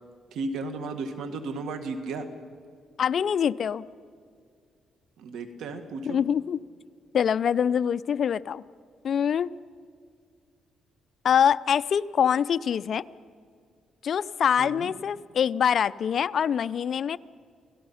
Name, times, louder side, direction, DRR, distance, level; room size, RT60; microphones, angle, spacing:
voice 1, 0.3-2.3 5.2-6.2 14.6-14.9, right 3 dB, 85° right, 7 dB, 1.8 m, -34 dB
voice 2, 3.0-3.8 6.0-6.6 7.1-8.6 9.0-9.5 11.2-13.0 14.0-17.2, left 8 dB, 55° left, 14 dB, 0.5 m, -24 dB
29.5 x 17.5 x 5.7 m, 2.2 s
cardioid pair, 105°, 0 cm